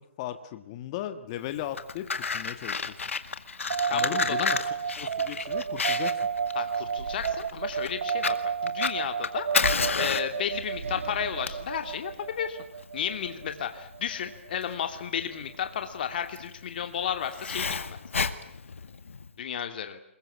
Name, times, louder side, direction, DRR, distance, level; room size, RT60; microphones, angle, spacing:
voice 1, 0.0-2.9 3.9-4.6 5.0-6.2, left 12 dB, 30° left, 9 dB, 1.7 m, -37 dB
Fire, 1.6-19.3, left 5 dB, 80° left, 2.0 m, -32 dB
sound 1, 3.7-14.5, right 7 dB, 65° right, 1.1 m, -31 dB
voice 2, 3.9-4.6 6.5-8.4 8.6-9.5 9.9-12.6 12.9-18.0 19.4-20.0, left 8 dB, 45° left, 7 dB, 2.6 m, -33 dB
sound 2, 4.5-4.6 5.0-8.6 9.6-13.2, right 5 dB, 80° right, 2.1 m, -46 dB
26.5 x 22.0 x 8.6 m, 0.70 s
hypercardioid pair, 155°, 7 cm